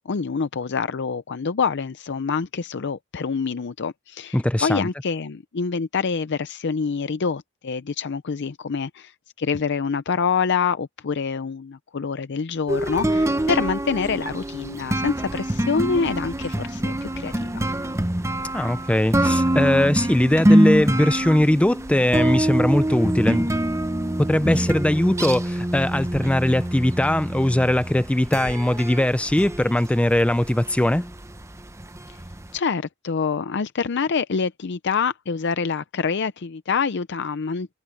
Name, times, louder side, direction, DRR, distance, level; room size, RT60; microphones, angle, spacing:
voice 1, 0.0-17.7 32.1-32.2 32.5-37.7, left 5 dB, 60° left, 0.6 m, -26 dB
voice 2, 4.3-4.9 18.5-23.5 24.3-31.1, left 1 dB, 5° left, 0.4 m, -20 dB
sound 1, 12.7-32.5, right 1 dB, 15° right, 0.9 m, -25 dB
head